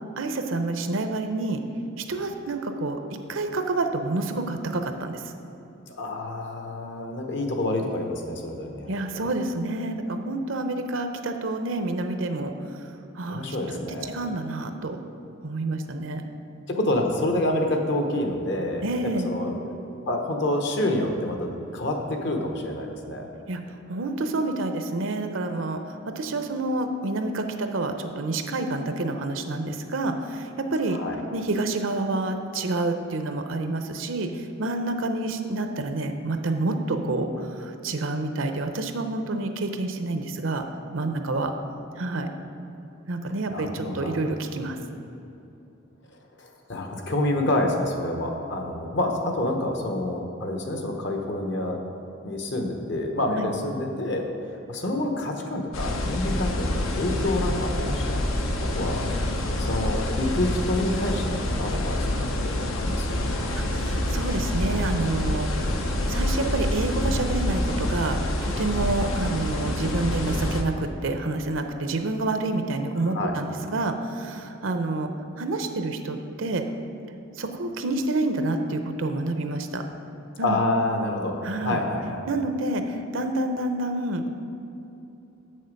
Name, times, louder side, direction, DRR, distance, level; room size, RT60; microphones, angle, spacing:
voice 1, 0.2-1.6 2.0-3.0 3.3-5.2 8.9-12.5 13.1-13.6 14.1-15.0 15.4-16.3 18.8-19.3 23.5-23.6 23.9-31.0 31.3-41.5 42.0-42.3 43.1-44.8 53.4-53.5 63.5-75.1 75.4-76.6 77.3-79.8 80.4-80.6 81.4-81.8 82.3-84.3, right 2 dB, 75° right, 6 dB, 0.7 m, -28 dB
voice 2, 6.0-8.9 9.2-9.3 13.3-14.2 16.7-18.8 19.2-23.3 30.9-31.2 43.5-44.2 46.4-51.8 52.2-58.2 58.7-59.1 59.6-62.1 62.4-63.2 73.1-73.4 80.4-82.2, left 1 dB, 60° left, 3 dB, 1.0 m, -28 dB
sound 1, 55.7-70.6, left 1 dB, 80° left, 0.8 m, -27 dB
7.9 x 6.5 x 5.3 m, 2.9 s
head